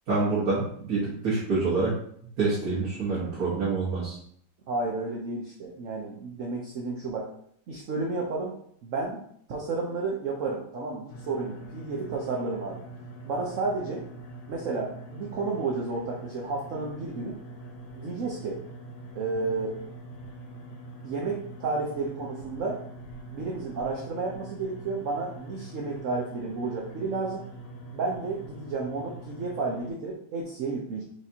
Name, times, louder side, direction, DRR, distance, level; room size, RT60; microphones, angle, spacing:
voice 1, 0.1-1.9 2.4-4.2, right 3 dB, 50° right, -8 dB, 1.6 m, -26 dB
voice 2, 4.7-7.3 7.7-8.5 8.8-9.2 9.5-12.8 13.2-14.0 14.5-17.3 17.9-18.6 19.1-19.8 21.0-22.8 23.3-27.5 27.9-31.0, right 3 dB, 70° right, -1 dB, 0.7 m, -31 dB
sound 1, 11.1-29.9, right 1 dB, 85° left, 1.8 m, -44 dB
4.9 x 3.9 x 2.8 m, 0.66 s
omnidirectional pair, 2.2 m